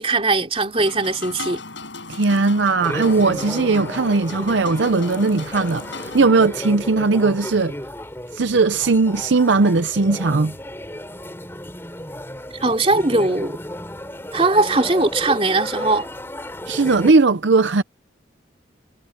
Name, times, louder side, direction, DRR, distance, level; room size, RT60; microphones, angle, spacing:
voice 1, 0.0-1.6 12.5-13.6 14.3-16.1, right 2 dB, 30° right, 3.6 m, -20 dB
sound 1, 0.8-6.3, left 3 dB, 70° left, 6.4 m, -36 dB
voice 2, 2.1-7.7 8.3-10.5 16.7-17.8, right 3 dB, 70° right, 0.6 m, -18 dB
sound 2, 2.8-17.1, left 1 dB, 10° left, 4.2 m, -33 dB
head